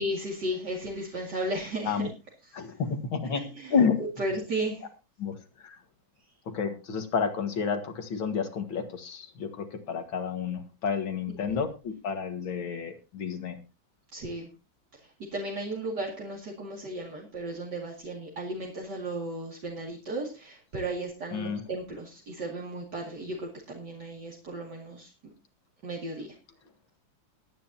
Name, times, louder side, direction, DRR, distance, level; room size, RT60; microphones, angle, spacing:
voice 1, 0.0-2.1 3.3-3.7 4.2-4.8 14.1-14.5 15.3-25.1 25.8-26.3, right 1 dB, 55° right, -2 dB, 3.0 m, -35 dB
voice 2, 2.5-4.0 5.2-5.4 5.6-5.8 6.5-13.6 21.3-21.6, left 6 dB, 90° left, 7 dB, 2.4 m, -30 dB
21.0 x 9.6 x 2.8 m, 0.29 s
omnidirectional pair, 2.1 m